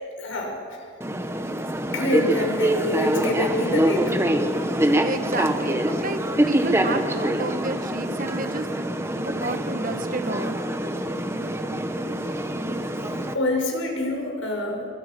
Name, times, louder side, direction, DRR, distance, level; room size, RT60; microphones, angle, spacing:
voice 1, 0.2-0.6 1.9-4.1 13.3-14.9, left 1 dB, 75° left, 1 dB, 6.4 m, -26 dB
sound 1, 1.0-13.3, right 1 dB, 15° right, 1.3 m, -25 dB
voice 2, 4.9-9.0 9.2-10.5, right 2 dB, 40° right, 8 dB, 1.4 m, -31 dB
29.5 x 23.0 x 6.2 m, 2.4 s
head